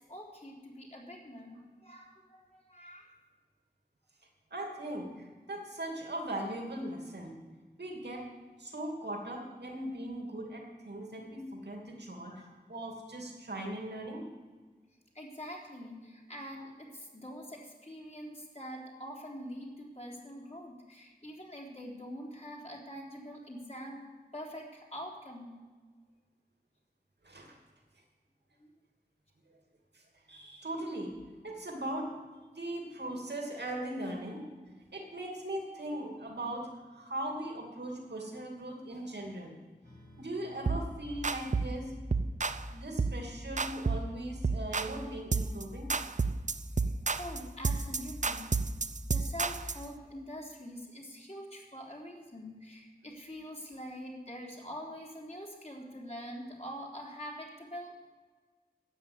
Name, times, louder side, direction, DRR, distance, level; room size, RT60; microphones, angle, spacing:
voice 1, 0.1-3.1 12.3-12.5 15.2-24.1 24.3-25.5 47.1-48.5 49.1-58.0, equal, 40° left, -2 dB, 3.6 m, -44 dB
voice 2, 4.5-7.4 7.8-8.3 8.6-14.3 27.2-27.6 29.9-31.2 31.4-32.2 32.5-34.4 34.9-39.5 40.2-41.9 42.7-45.9, right 1 dB, 90° right, 1 dB, 2.6 m, -39 dB
sound 1, 39.8-46.9, right 2 dB, 70° left, 5.0 m, -60 dB
sound 2, 40.7-40.9 41.2-41.8 42.1-42.6 43.0-43.2 43.6-44.1 44.4-45.0 45.3-45.6 45.9-49.8, right 4 dB, 45° right, 0.6 m, -31 dB
12.5 x 8.5 x 8.6 m, 1.4 s
wide cardioid pair, 55°, 17 cm